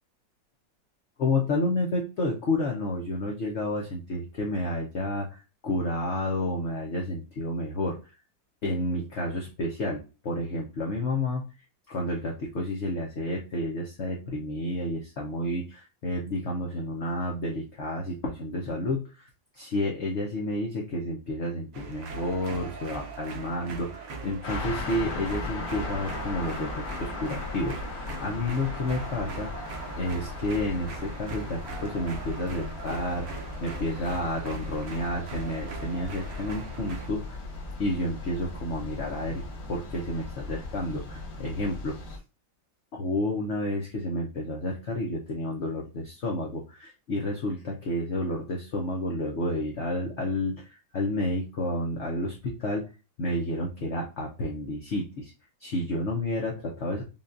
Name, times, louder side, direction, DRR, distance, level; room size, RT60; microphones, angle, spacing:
voice 1, 1.2-8.0 8.6-11.4 11.9-19.3 19.6-29.5 30.0-37.4 37.8-39.4 39.7-42.0 42.9-52.9 53.2-55.3 55.6-57.0, left 1 dB, 55° left, -1 dB, 0.8 m, -30 dB
sound 1, 21.7-37.1, right 5 dB, 60° right, 1.1 m, -40 dB
sound 2, 24.4-42.2, left 3 dB, 90° left, 1.8 m, -37 dB
5.5 x 2.3 x 2.5 m, 0.31 s
omnidirectional pair, 2.0 m